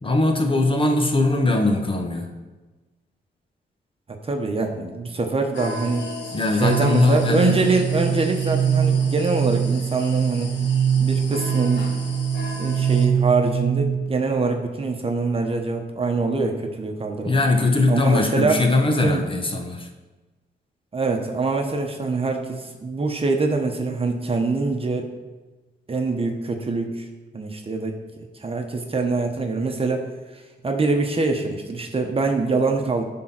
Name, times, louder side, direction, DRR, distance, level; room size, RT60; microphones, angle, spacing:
voice 1, 0.0-2.3 6.3-7.5 17.2-19.9, left 2 dB, 30° left, 3 dB, 1.2 m, -20 dB
voice 2, 4.2-6.1 6.6-10.6 11.0-11.9 12.6-17.4 17.9-18.6 19.0-19.2 20.9-25.1 25.9-27.1 27.3-27.9 28.4-30.0 30.3-33.0, right 3 dB, 30° right, 3 dB, 1.1 m, -24 dB
sound 1, 5.5-13.1, left 3 dB, 85° left, 1.4 m, -36 dB
sound 2, 6.6-14.2, right 8 dB, 45° right, 1.4 m, -23 dB
10.5 x 3.8 x 6.0 m, 1.2 s
cardioid pair, 90°, 18 cm